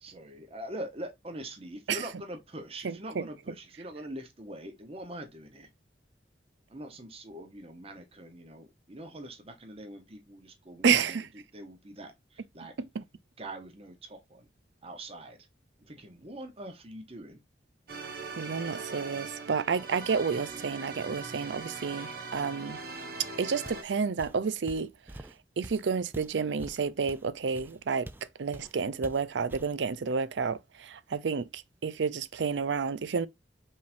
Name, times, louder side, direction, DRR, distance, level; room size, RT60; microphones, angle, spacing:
voice 1, 0.0-5.7 6.7-11.2 11.5-12.7 13.4-14.5 14.8-15.5 15.8-17.4, right 1 dB, 35° right, 1.0 m, -43 dB
voice 2, 2.8-3.2 10.8-11.3 12.9-13.0 18.3-22.8 23.4-24.9 25.6-28.1 28.4-33.3, right 5 dB, 80° right, 0.5 m, -30 dB
sound 1, 17.9-23.8, right 4 dB, 55° right, 1.4 m, -41 dB
Walk footsteps, 23.6-23.9 24.2-28.3 28.5-28.8 29.0-29.8, right 1 dB, 10° right, 0.4 m, -46 dB
5.3 x 3.5 x 2.6 m
head